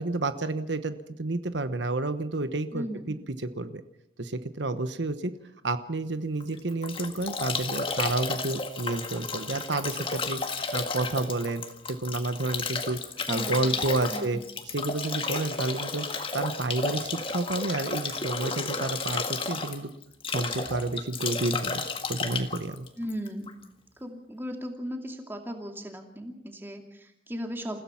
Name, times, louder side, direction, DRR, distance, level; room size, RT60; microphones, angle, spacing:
voice 1, 0.0-3.2 3.4-3.8 4.2-5.3 5.6-10.4 10.7-13.0 13.3-14.4 14.7-16.1 16.3-19.9 20.3-22.9, right 2 dB, 80° right, 10 dB, 1.1 m, -30 dB
voice 2, 2.7-3.3 13.3-14.4 23.0-23.5 24.0-27.8, equal, 10° right, 3 dB, 2.5 m, -37 dB
Bathtub (filling or washing) / Drip / Trickle dribble, 6.4-23.6, left 4 dB, 30° left, 1.8 m, -32 dB
28.5 x 16.0 x 5.8 m, 0.80 s
head